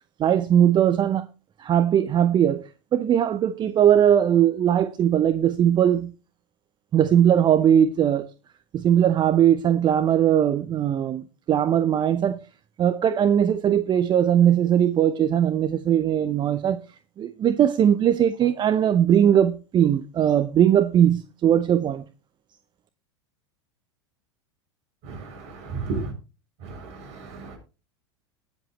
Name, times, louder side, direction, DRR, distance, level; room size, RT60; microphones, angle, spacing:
voice 1, 0.2-1.3 1.6-6.1 6.9-8.3 8.7-12.4 12.8-16.8 17.2-22.0, right 9 dB, 30° right, 0.7 m, -20 dB
voice 2, 25.0-26.1 26.6-27.6, right 4 dB, 50° right, 6.7 m, -34 dB
19.0 x 7.6 x 3.1 m
hypercardioid pair, 85°, 15 cm